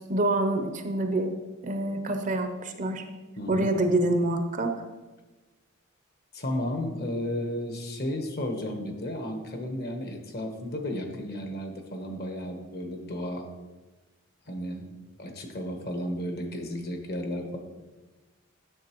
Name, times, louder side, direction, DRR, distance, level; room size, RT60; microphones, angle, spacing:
voice 1, 0.0-1.3 1.6-3.0 3.5-4.7, right 2 dB, 40° right, 6 dB, 0.6 m, -26 dB
voice 2, 3.4-3.7 6.3-13.5 14.5-14.9 15.2-17.6, left 1 dB, 50° left, 4 dB, 1.0 m, -33 dB
10.0 x 6.7 x 3.0 m, 1.2 s
head